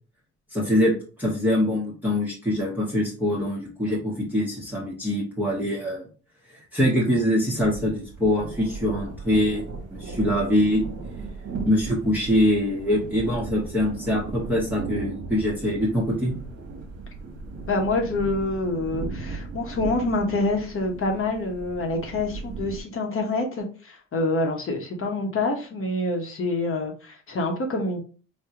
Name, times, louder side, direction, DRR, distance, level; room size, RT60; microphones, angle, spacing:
voice 1, 0.5-0.9 1.2-6.0 6.5-9.6 9.9-10.8 11.6-16.3, left 1 dB, 5° right, -5 dB, 1.0 m, -24 dB
sound 1, 7.6-22.8, right 4 dB, 55° right, 1.0 m, -37 dB
voice 2, 17.7-28.0, left 2 dB, 45° left, 2 dB, 0.9 m, -26 dB
3.6 x 2.2 x 2.8 m, 0.37 s
cardioid pair, 90°, 30 cm